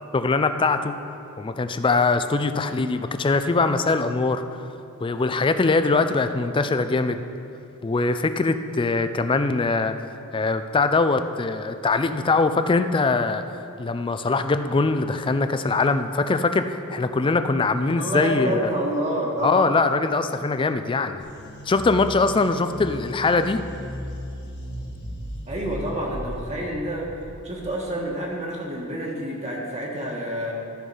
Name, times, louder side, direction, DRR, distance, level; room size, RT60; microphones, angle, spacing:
voice 1, 0.1-1.0 1.4-4.4 5.0-7.2 7.8-9.9 10.3-13.4 13.8-18.7 19.4-21.2 21.7-23.6, left 3 dB, 20° left, 9 dB, 0.4 m, -22 dB
voice 2, 18.0-19.7 25.5-27.1 27.4-30.5, equal, 30° right, -3 dB, 1.4 m, -28 dB
sound 1, 21.2-27.7, equal, 50° left, 1.6 m, -36 dB
13.0 x 5.5 x 5.5 m, 2.6 s
head